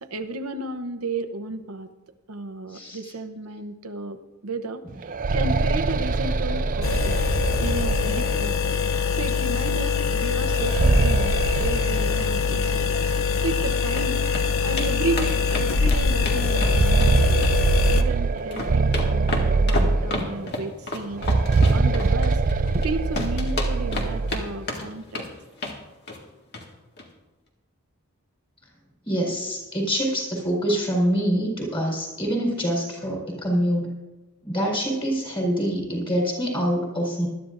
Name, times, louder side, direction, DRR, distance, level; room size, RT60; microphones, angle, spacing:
voice 1, 0.0-1.9 2.3-7.2 7.6-8.6 9.1-13.0 13.4-14.3 14.6-17.4 17.9-21.3 21.7-22.4 22.7-25.3, right 2 dB, 90° right, 8 dB, 0.9 m, -33 dB
sound 1, 4.9-8.7 10.5-12.7 13.0-13.1 13.9-14.0 14.5-14.7 16.3-20.5 21.1-24.5, right 3 dB, 40° right, 0.5 m, -23 dB
sound 2, 6.8-18.0, left 5 dB, 65° left, 0.7 m, -23 dB
sound 3, 13.5-14.0 14.3-14.4 14.8-14.9 15.2-17.1 17.4-18.1 18.4-22.9 23.1-24.4 24.7-25.3 25.6-25.8 26.1-26.2 26.5-26.6 27.0-27.1, left 2 dB, 50° left, 1.9 m, -30 dB
voice 2, 29.0-33.9 34.4-37.3, equal, 25° left, -2 dB, 4.2 m, -25 dB
20.5 x 12.5 x 2.6 m, 1.1 s
head